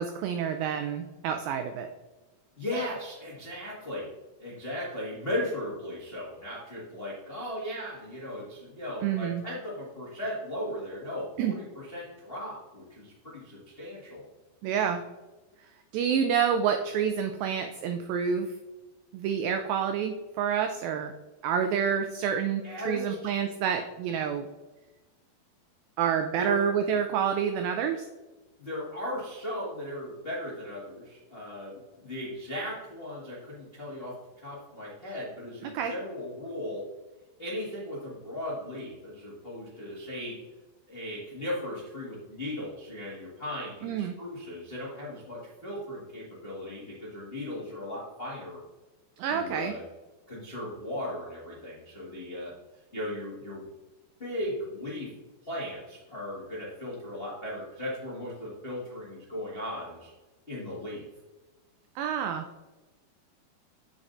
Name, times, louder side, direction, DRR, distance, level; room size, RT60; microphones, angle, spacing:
voice 1, 0.0-1.9 9.0-9.4 11.4-11.5 14.6-15.0 15.9-18.5 19.1-21.1 21.4-24.4 26.0-28.1 35.6-35.9 43.8-44.1 49.2-49.7 62.0-62.5, right 7 dB, 90° right, 6 dB, 2.0 m, -28 dB
voice 2, 2.6-4.1 4.4-14.2 22.6-23.3 26.4-26.6 28.6-36.9 37.4-40.4 40.9-48.6 49.3-49.8 50.3-52.5 52.9-53.7 54.2-55.1 55.4-60.1 60.5-61.0, left 1 dB, 70° left, -7 dB, 0.5 m, -37 dB
7.3 x 7.1 x 2.6 m, 1.1 s
omnidirectional pair, 4.7 m